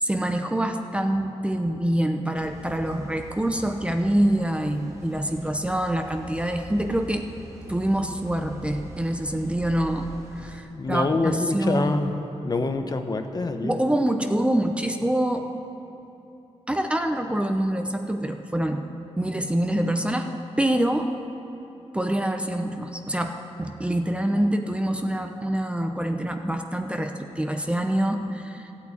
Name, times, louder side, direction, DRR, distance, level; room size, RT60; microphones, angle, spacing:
voice 1, 0.0-7.3 7.7-12.2 13.6-15.5 16.7-18.8 19.2-20.3 20.6-21.1 21.9-28.7, right 1 dB, 10° right, 5 dB, 0.7 m, -25 dB
sound 1, 2.4-10.6, right 1 dB, 25° right, 1.8 m, -43 dB
voice 2, 10.7-12.1 12.4-13.8, left 3 dB, 35° left, 7 dB, 0.9 m, -25 dB
13.5 x 8.5 x 9.7 m, 2.9 s
wide cardioid pair, 110°, 11 cm